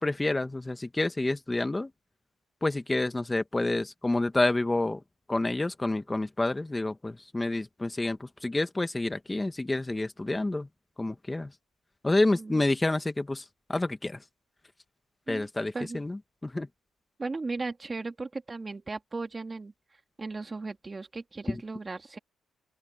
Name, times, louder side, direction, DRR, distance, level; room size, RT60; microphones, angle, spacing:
voice 1, 0.0-1.9 2.6-5.0 5.3-10.7 11.0-11.5 12.0-14.2 15.3-16.7 21.5-21.6, left 2 dB, 15° left, 1.6 m, -28 dB
voice 2, 17.2-19.7 20.2-22.2, right 3 dB, 25° right, 2.4 m, -36 dB
open air
cardioid pair, 90°, 0 cm